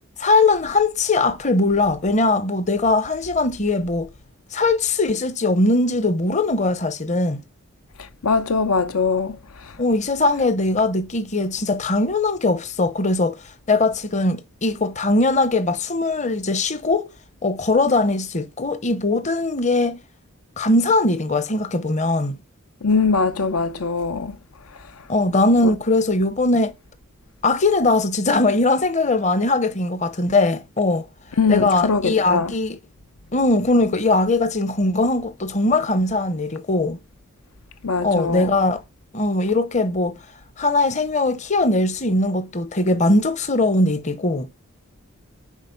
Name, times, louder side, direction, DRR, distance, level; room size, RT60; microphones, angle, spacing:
voice 1, 0.2-4.1 4.5-7.4 9.8-13.4 13.7-17.1 17.4-20.0 20.6-22.4 25.1-26.7 27.4-31.1 31.5-32.8 33.3-37.0 38.0-38.8 39.1-40.1 40.6-44.5, left 2 dB, 35° left, 0.8 m, -20 dB
voice 2, 8.0-9.7 22.8-24.4 25.6-25.7 31.4-32.5 37.8-38.5, left 4 dB, 85° left, 0.8 m, -22 dB
10.0 x 4.1 x 6.8 m
head